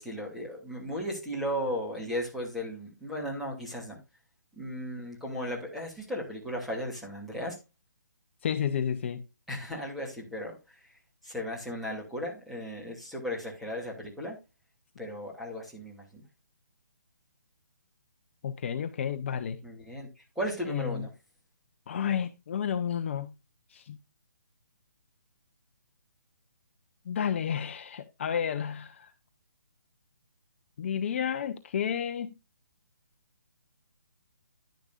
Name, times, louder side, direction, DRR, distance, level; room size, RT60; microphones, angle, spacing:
voice 1, 0.0-4.0 4.6-7.6 9.5-11.0 11.2-14.4 15.0-16.2 19.6-21.1, equal, ahead, 2.6 m, -36 dB
voice 2, 8.4-9.2 18.4-19.6 20.7-21.0 21.9-23.3 23.7-24.0 27.1-29.1 30.8-32.3, left 8 dB, 40° left, 0.7 m, -31 dB
10.5 x 10.5 x 2.4 m
hypercardioid pair, 160°, 10 cm